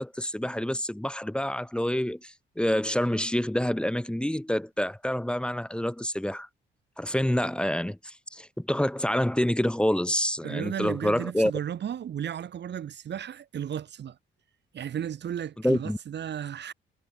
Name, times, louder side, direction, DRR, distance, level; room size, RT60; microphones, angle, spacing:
voice 1, 0.0-6.5 7.0-11.5 15.6-16.0, left 1 dB, 5° left, 2.4 m, -27 dB
voice 2, 10.4-14.2 14.7-16.7, right 9 dB, 60° right, 3.7 m, -34 dB
cardioid pair, 90°, 20 cm